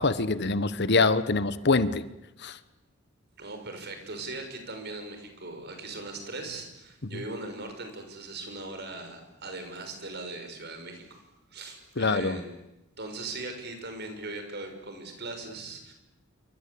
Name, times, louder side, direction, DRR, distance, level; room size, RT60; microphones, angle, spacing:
voice 1, 0.0-2.0 2.4-2.6 7.0-7.2 12.0-12.4, left 3 dB, 55° left, 14 dB, 1.2 m, -25 dB
voice 2, 3.4-11.2 11.5-12.5 13.0-15.9, right 2 dB, 50° right, 6 dB, 5.9 m, -39 dB
27.5 x 25.0 x 8.7 m, 0.90 s
head